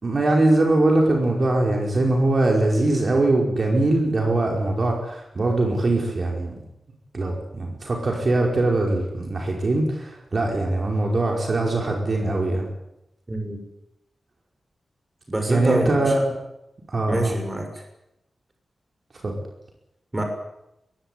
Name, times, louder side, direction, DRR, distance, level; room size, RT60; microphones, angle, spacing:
voice 1, 0.0-6.6 7.1-12.7 15.5-16.3 16.9-17.3 19.2-19.3, right 2 dB, 45° right, 0 dB, 5.1 m, -22 dB
voice 2, 13.3-13.6 15.3-16.1 17.1-17.7 20.1-20.2, right 1 dB, 20° right, 4 dB, 6.3 m, -25 dB
22.0 x 16.5 x 9.8 m, 0.88 s
wide cardioid pair, 115°, 0 cm